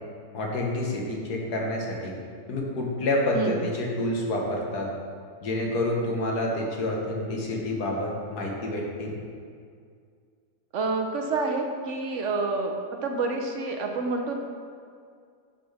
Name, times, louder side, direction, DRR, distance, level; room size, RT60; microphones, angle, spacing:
voice 1, 0.3-2.1 2.5-4.9 5.4-9.1, left 1 dB, 90° left, -1 dB, 1.8 m, -28 dB
voice 2, 3.3-3.7 10.7-12.7 13.0-14.4, right 3 dB, 60° right, 3 dB, 0.9 m, -28 dB
6.3 x 5.9 x 5.7 m, 2.2 s
omnidirectional pair, 1.6 m